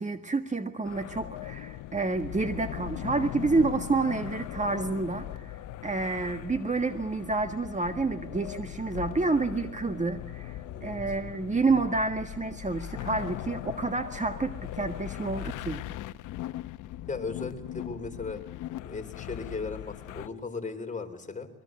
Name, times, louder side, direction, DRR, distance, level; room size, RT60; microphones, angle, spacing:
voice 1, 0.0-15.8, right 3 dB, 25° right, 8 dB, 1.8 m, -29 dB
sound 1, 0.8-20.3, left 13 dB, 90° left, 0.9 m, -39 dB
voice 2, 10.6-11.0 17.1-18.4 18.8-21.5, left 4 dB, 25° left, 4 dB, 4.0 m, -37 dB
22.5 x 22.5 x 7.8 m, 0.84 s
cardioid pair, 90°, 30 cm